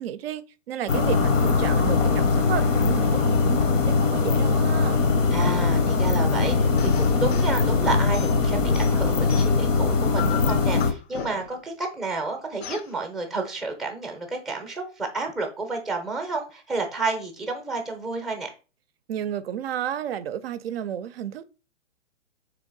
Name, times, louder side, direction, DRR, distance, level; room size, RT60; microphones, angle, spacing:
voice 1, 0.0-5.0 19.1-21.4, right 10 dB, 50° right, 0.5 m, -32 dB
sound 1, 0.9-10.9, left 4 dB, 75° left, 0.9 m, -21 dB
voice 2, 5.3-18.5, right 3 dB, ahead, 0.5 m, -30 dB
sound 2, 6.8-7.6 8.1-9.7 10.2-11.7 12.6-12.9, left 9 dB, 55° left, 0.5 m, -37 dB
3.7 x 3.4 x 3.7 m
hypercardioid pair, 125°, 38 cm